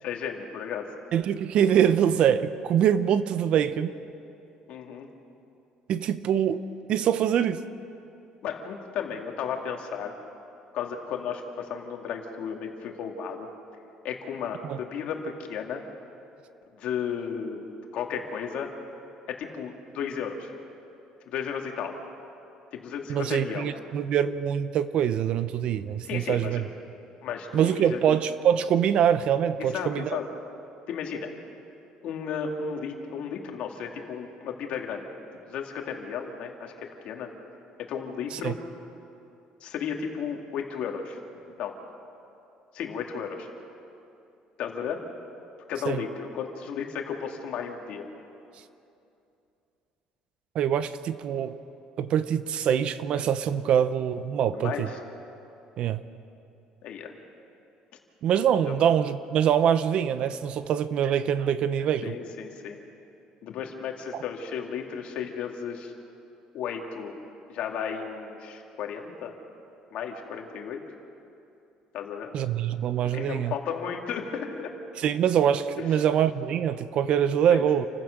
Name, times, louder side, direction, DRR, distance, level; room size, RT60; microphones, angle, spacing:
voice 1, 0.0-0.9 4.7-5.1 8.4-10.1 10.7-13.5 14.0-15.8 16.8-17.7 17.9-18.7 19.3-20.5 21.3-21.9 22.7-23.7 26.0-26.6 27.2-28.0 29.6-30.3 30.9-31.3 32.0-35.1 35.5-37.3 37.9-38.6 39.6-41.2 41.6-41.8 42.7-43.5 44.6-45.0 45.7-48.1 54.5-55.0 56.8-57.2 58.7-58.8 62.0-62.8 63.4-65.9 66.5-67.2 67.5-69.4 69.9-70.8 71.9-72.3 73.0-74.7 75.9-76.0 77.5-77.9, left 7 dB, 60° left, 2 dB, 2.5 m, -34 dB
voice 2, 1.1-3.9 5.9-6.6 6.9-7.6 14.6-14.8 23.1-26.6 27.5-30.1 38.3-38.5 45.9-46.0 50.5-51.5 52.0-54.9 55.8-56.0 58.2-62.1 72.3-73.5 75.0-77.9, right 9 dB, 50° right, 13 dB, 0.8 m, -24 dB
29.0 x 15.5 x 6.7 m, 2.7 s
cardioid pair, 155°, 2 cm